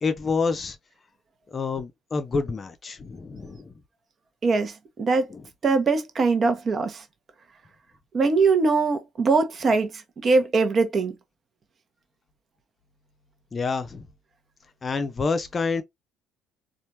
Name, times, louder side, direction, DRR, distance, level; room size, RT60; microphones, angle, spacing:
voice 1, 0.0-0.8 1.5-3.7 5.3-5.4 13.5-14.1 14.8-15.8, left 4 dB, 30° left, 0.6 m, -28 dB
voice 2, 4.4-4.7 5.0-5.3 5.6-7.0 8.1-9.9 10.2-11.1, right 4 dB, 40° right, 1.0 m, -21 dB
4.3 x 2.5 x 2.8 m
figure-of-eight pair, 55°, 0 cm